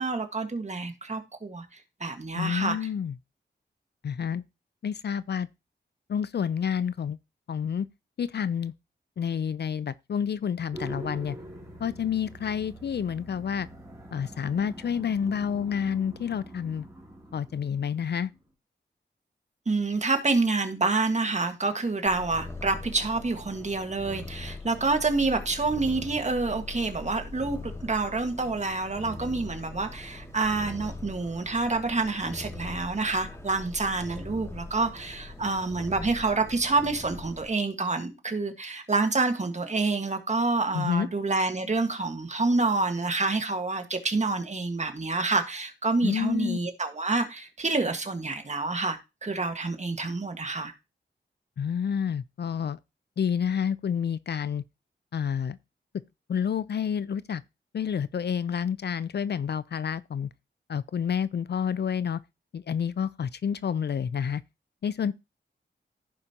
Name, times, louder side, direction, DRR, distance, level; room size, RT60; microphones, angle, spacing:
voice 1, 0.0-1.6 2.0-2.9 19.6-50.7, right 3 dB, 35° right, 1.6 m, -28 dB
voice 2, 2.3-3.1 4.0-4.4 4.8-5.5 6.1-7.2 7.5-7.9 8.2-8.7 9.2-11.4 11.8-13.7 14.1-16.9 17.3-18.3 40.7-41.1 46.0-46.6 51.6-52.8 53.2-54.6 55.1-55.6 56.3-57.4 57.7-60.3 60.7-62.2 62.5-64.4 64.8-65.1, left 7 dB, 60° left, 0.4 m, -29 dB
sound 1, 10.7-18.4, right 1 dB, 15° right, 2.8 m, -44 dB
Purr, 22.0-37.5, left 2 dB, 15° left, 2.3 m, -41 dB
15.5 x 5.1 x 2.9 m
wide cardioid pair, 80°, 19 cm